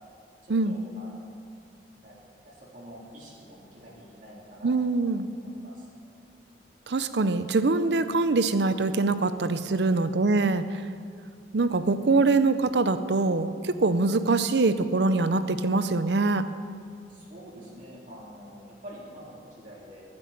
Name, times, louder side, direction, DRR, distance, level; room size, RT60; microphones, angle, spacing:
voice 1, 0.4-1.3 2.0-2.2 2.5-5.1 5.4-5.9 17.1-20.0, equal, 45° right, -5 dB, 3.7 m, -47 dB
voice 2, 4.6-5.3 6.9-10.8 11.5-16.4, right 3 dB, 70° right, 12 dB, 0.6 m, -24 dB
12.5 x 9.9 x 8.6 m, 2.3 s
head